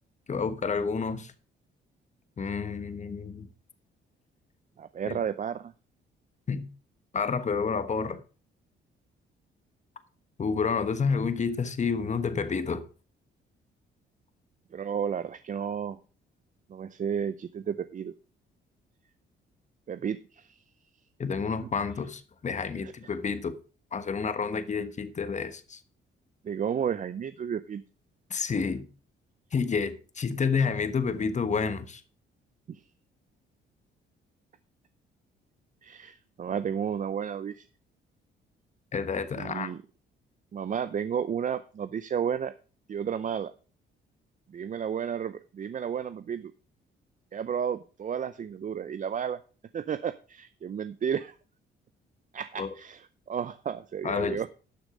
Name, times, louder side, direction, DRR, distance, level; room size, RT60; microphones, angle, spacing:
voice 1, 0.3-1.3 2.4-3.5 5.1-5.2 6.5-6.7 7.1-8.2 10.4-12.8 21.2-23.6 23.9-25.8 28.3-28.9 29.5-32.0 38.9-39.7 52.6-52.7 54.0-54.4, left 5 dB, 35° left, 1.2 m, -29 dB
voice 2, 4.8-5.7 14.7-16.0 16.7-18.1 19.9-20.6 22.8-22.9 26.4-27.8 32.7-32.8 35.8-37.6 39.4-39.8 40.5-42.5 42.9-43.5 44.5-46.5 47.3-49.4 49.7-51.3 52.3-54.5, right 8 dB, 40° right, 0.6 m, -32 dB
12.0 x 6.3 x 5.0 m
cardioid pair, 90°, 20 cm